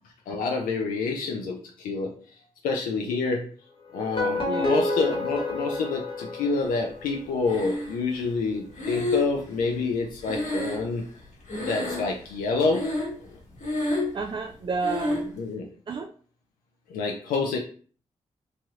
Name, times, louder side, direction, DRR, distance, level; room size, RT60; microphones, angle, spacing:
voice 1, 0.3-2.2 2.6-3.5 3.9-11.0 11.6-12.9 15.4-15.7 16.9-17.6, left 4 dB, 80° left, 1 dB, 0.4 m, -28 dB
sound 1, 3.9-7.1, left 2 dB, 40° left, 1.1 m, -29 dB
voice 2, 4.4-4.8 14.1-15.3 15.9-16.1, right 4 dB, 35° right, 5 dB, 0.3 m, -31 dB
Breathing, 7.5-8.2 8.8-11.2 11.5-12.3 12.7-13.3 13.5-14.2 14.8-15.3, left 2 dB, 60° left, 1.1 m, -29 dB
3.1 x 2.8 x 2.3 m, 0.43 s
supercardioid pair, 40°, 14 cm